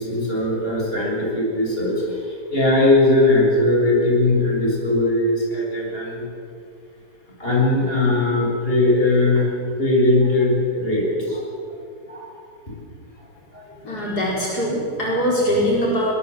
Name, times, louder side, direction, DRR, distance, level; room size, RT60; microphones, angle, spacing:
voice 1, 0.0-2.2 2.5-6.2 7.4-9.5 9.8-11.5 12.1-12.3 12.7-12.8 13.5-13.6, left 2 dB, 35° left, -3 dB, 6.7 m, -19 dB
voice 2, 13.8-16.1, equal, 70° left, -4 dB, 5.2 m, -22 dB
22.0 x 22.0 x 7.9 m, 2.4 s
omnidirectional pair, 1.8 m